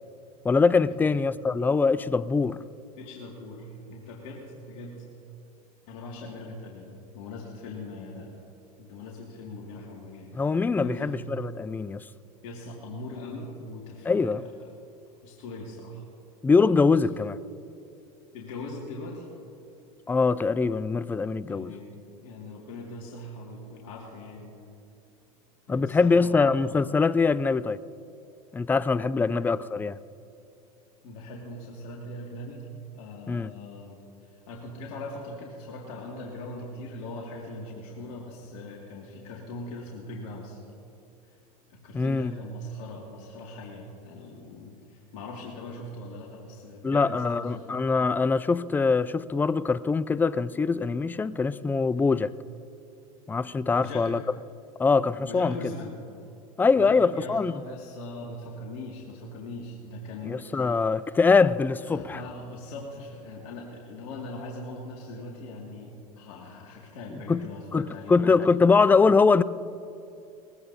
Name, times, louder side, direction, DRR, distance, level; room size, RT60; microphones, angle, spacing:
voice 1, 0.4-2.6 10.3-12.0 14.1-14.4 16.4-17.4 20.1-21.7 25.7-27.8 28.5-30.0 33.3-33.5 41.9-42.3 46.8-52.3 53.3-54.2 54.8-55.6 56.6-57.5 60.3-62.2 67.3-67.4 67.7-69.4, left 4 dB, 10° left, 0.3 m, -23 dB
voice 2, 3.0-5.0 5.9-8.4 8.8-10.3 10.8-11.2 12.4-14.7 15.2-16.0 17.1-17.2 18.3-19.3 21.5-24.5 25.7-26.6 29.1-29.4 31.0-32.7 32.9-34.0 34.2-40.6 41.7-47.7 51.9-52.2 53.6-54.1 55.2-55.9 56.7-60.9 61.8-68.4, left 2 dB, 65° left, 2.2 m, -41 dB
20.5 x 16.0 x 2.8 m
hypercardioid pair, 95°, 20 cm